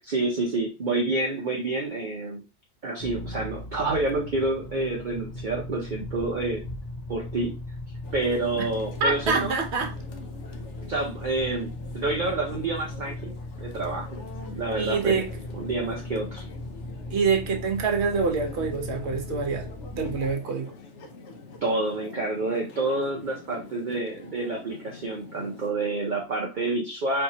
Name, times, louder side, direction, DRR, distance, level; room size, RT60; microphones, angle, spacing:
voice 1, 0.0-2.4 2.8-6.6 7.1-7.5 8.1-9.6 10.8-13.3 13.6-14.1 14.5-15.2 15.5-16.4 21.6-27.2, right 2 dB, 50° right, 0.7 m, -28 dB
sound 1, 3.0-20.3, left 1 dB, 40° left, 0.7 m, -38 dB
sound 2, 8.0-25.7, left 3 dB, 75° left, 1.0 m, -45 dB
voice 2, 9.0-9.9 14.7-15.3 17.1-20.7, right 5 dB, 65° right, 1.1 m, -26 dB
4.4 x 2.8 x 2.7 m
omnidirectional pair, 1.3 m